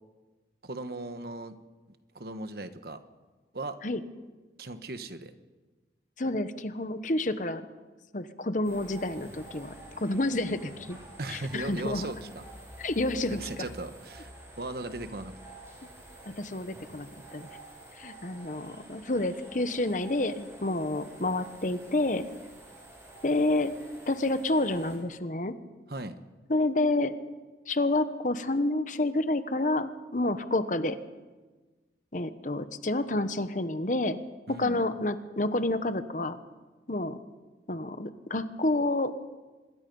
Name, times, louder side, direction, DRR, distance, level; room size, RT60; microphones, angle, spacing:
voice 1, 0.6-1.6 2.1-3.0 3.5-3.8 4.6-5.3 11.2-12.4 13.3-15.3 25.9-26.2 34.5-34.8, right 2 dB, 60° right, 10 dB, 1.3 m, -38 dB
voice 2, 6.2-7.6 8.1-11.0 11.3-12.1 12.8-13.4 15.8-15.9 16.3-17.5 18.0-22.2 23.2-23.8 24.1-25.6 26.5-27.2 27.7-31.0 32.1-34.2 34.5-36.4 36.9-37.2 37.7-39.1, left 2 dB, 45° left, 11 dB, 1.1 m, -29 dB
sound 1, 8.6-25.0, right 1 dB, 15° right, 6.8 m, -49 dB
26.0 x 21.5 x 5.5 m, 1.3 s
head